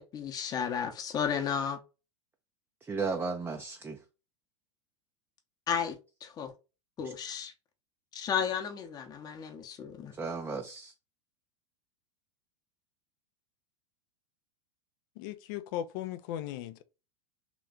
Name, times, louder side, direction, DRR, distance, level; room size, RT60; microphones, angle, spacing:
voice 1, 0.0-1.8 5.7-6.5 7.0-7.5 8.1-10.1, left 7 dB, 25° left, 0.8 m, -33 dB
voice 2, 2.8-4.0 10.1-10.9, right 4 dB, 10° right, 0.5 m, -34 dB
voice 3, 15.2-16.8, left 12 dB, 45° left, 0.5 m, -37 dB
3.2 x 3.0 x 3.7 m
figure-of-eight pair, 85°, 15 cm